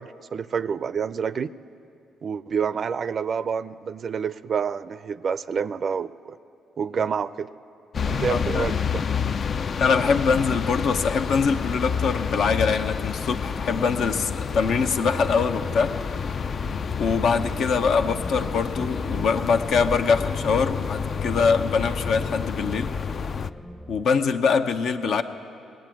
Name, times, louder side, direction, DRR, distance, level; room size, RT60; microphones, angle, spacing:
voice 1, 0.0-1.5 2.2-6.4 6.8-7.5 8.1-9.0 25.1-25.2, right 6 dB, 50° right, 15 dB, 0.4 m, -28 dB
sound 1, 7.9-23.5, left 6 dB, 45° left, 0.3 m, -29 dB
voice 2, 8.3-8.7 9.8-16.4 17.0-22.9 23.9-25.2, left 5 dB, 70° left, 7 dB, 0.7 m, -23 dB
sound 2, 15.0-24.0, right 1 dB, 10° left, 0.6 m, -39 dB
19.0 x 7.7 x 9.2 m, 2.6 s
cardioid pair, 90°, 0 cm